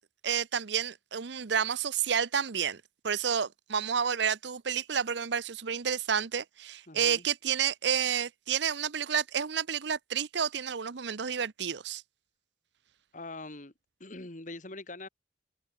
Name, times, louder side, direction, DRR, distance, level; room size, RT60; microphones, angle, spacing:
voice 1, 0.2-12.0, right 7 dB, 65° right, 0.7 m, -30 dB
voice 2, 6.9-7.3 13.1-13.7 14.0-15.1, left 2 dB, 40° left, 2.1 m, -43 dB
head